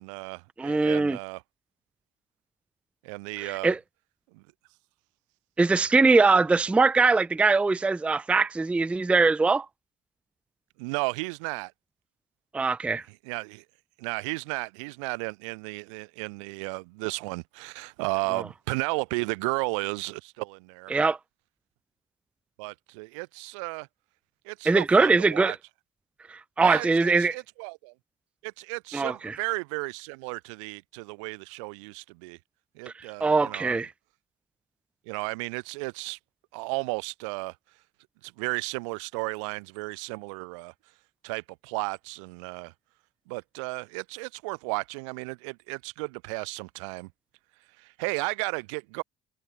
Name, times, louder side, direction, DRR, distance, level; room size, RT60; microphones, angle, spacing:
voice 1, 0.0-1.4 3.0-3.7 4.3-4.4 10.8-11.7 13.1-13.6 14.0-20.9 22.6-23.9 24.4-25.6 26.6-27.9 28.4-32.4 32.7-33.8 35.1-36.2 36.5-37.6 38.2-40.7 41.2-42.7 43.3-47.1 47.8-49.0, right 29 dB, 85° right, 2.3 m, -34 dB
voice 2, 0.6-1.2 3.4-3.8 5.6-9.7 12.5-13.0 20.9-21.2 24.7-25.6 26.3-27.4 28.9-29.4 33.0-33.9, right 3 dB, 10° right, 0.3 m, -22 dB
supercardioid pair, 70°, 15 cm